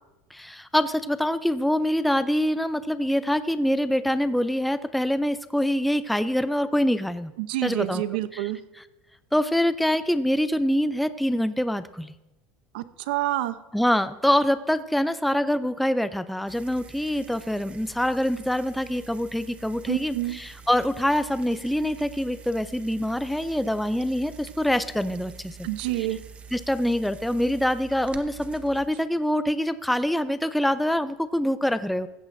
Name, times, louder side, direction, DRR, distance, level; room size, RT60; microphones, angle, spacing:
voice 1, 0.3-7.3 7.6-8.0 8.3-8.5 9.3-12.1 13.7-25.7 26.5-32.1, equal, ahead, 13 dB, 0.4 m, -25 dB
voice 2, 7.4-8.6 12.7-13.6 19.9-20.4 25.6-26.2, right 15 dB, 85° right, 13 dB, 0.7 m, -28 dB
sound 1, 16.5-28.9, right 6 dB, 25° right, 0.8 m, -46 dB
15.0 x 14.5 x 2.6 m, 0.99 s
supercardioid pair, 140°, 5 cm